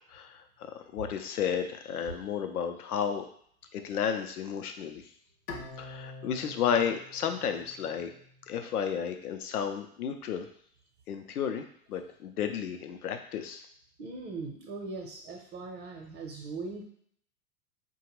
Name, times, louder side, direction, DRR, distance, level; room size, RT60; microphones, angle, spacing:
voice 1, 0.9-3.2 3.7-5.0 5.8-8.1 8.5-10.5 11.1-11.6 11.9-13.6, left 8 dB, 75° left, 6 dB, 0.6 m, -32 dB
Bowed string instrument, 5.5-8.7, left 3 dB, 20° left, 0.4 m, -46 dB
voice 2, 14.0-16.8, right 3 dB, 40° right, -1 dB, 0.8 m, -40 dB
4.9 x 2.3 x 3.0 m, 0.62 s
figure-of-eight pair, 90°, 45 cm